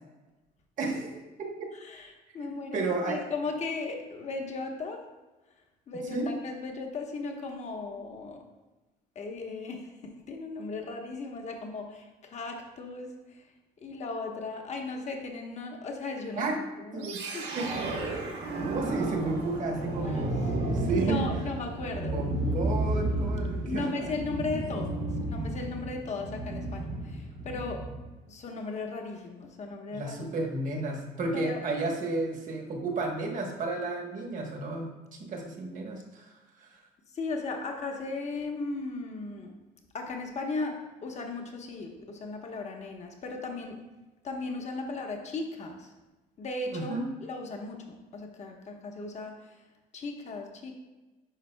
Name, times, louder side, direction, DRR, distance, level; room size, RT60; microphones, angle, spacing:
voice 1, 0.8-1.7 2.4-3.2 6.1-6.3 16.3-16.6 16.9-18.0 18.5-21.5 22.0-24.1 29.9-36.8 46.7-47.1, right 2 dB, 50° right, 2 dB, 1.2 m, -33 dB
voice 2, 2.3-5.0 5.9-8.4 9.1-9.9 10.3-13.1 13.8-16.5 16.8-17.5 20.1-20.2 21.0-22.2 23.6-27.8 28.3-30.3 31.3-31.6 37.1-39.5 39.9-43.8 44.2-45.9 46.4-49.3 49.9-50.8, left 3 dB, 40° left, 2 dB, 1.1 m, -36 dB
sound 1, 17.0-28.1, right 2 dB, 75° right, 1.6 m, -32 dB
9.9 x 5.3 x 2.2 m, 1.1 s
cardioid pair, 110°, 17 cm